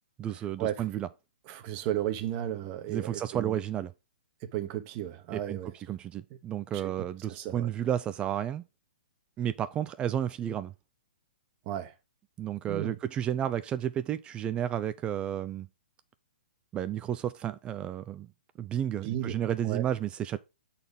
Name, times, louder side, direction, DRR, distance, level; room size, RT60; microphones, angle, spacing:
voice 1, 0.2-1.1 2.9-3.9 5.3-5.6 5.9-8.6 9.4-10.7 12.4-15.7 16.7-18.3 18.6-20.4, right 10 dB, 20° right, 0.3 m, -32 dB
voice 2, 1.5-3.6 4.4-5.7 6.7-6.9 7.3-7.7 11.7-11.9 12.7-13.0 19.0-19.4 19.6-19.8, right 12 dB, 35° right, 1.0 m, -34 dB
6.7 x 4.1 x 5.3 m
hypercardioid pair, 135°, 5 cm